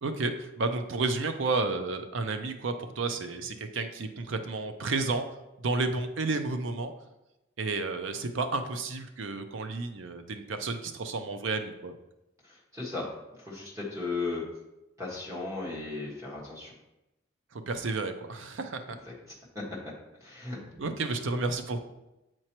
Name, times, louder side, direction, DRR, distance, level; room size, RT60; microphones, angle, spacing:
voice 1, 0.0-5.2 5.6-6.9 7.6-11.9 17.5-18.8 20.8-21.8, right 3 dB, 80° right, 8 dB, 0.5 m, -31 dB
voice 2, 12.4-13.1 13.4-14.5 15.0-16.7 19.0-19.1 19.5-19.6 20.2-20.8, left 3 dB, 15° right, -4 dB, 1.6 m, -36 dB
7.6 x 4.5 x 3.0 m, 0.95 s
head